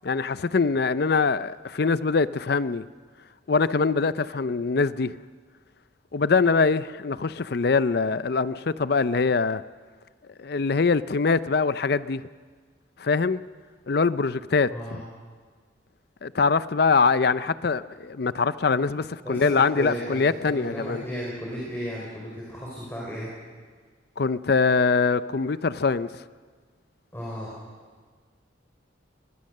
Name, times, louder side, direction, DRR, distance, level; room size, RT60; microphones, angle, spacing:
voice 1, 0.0-2.8 3.5-5.2 6.1-9.6 10.4-12.2 13.0-13.4 13.9-15.0 16.2-21.0 24.2-26.2, left 4 dB, 55° left, 0.5 m, -23 dB
voice 2, 14.7-15.0 19.2-23.3 27.1-27.5, equal, 10° left, 5.3 m, -34 dB
23.5 x 20.5 x 6.6 m
head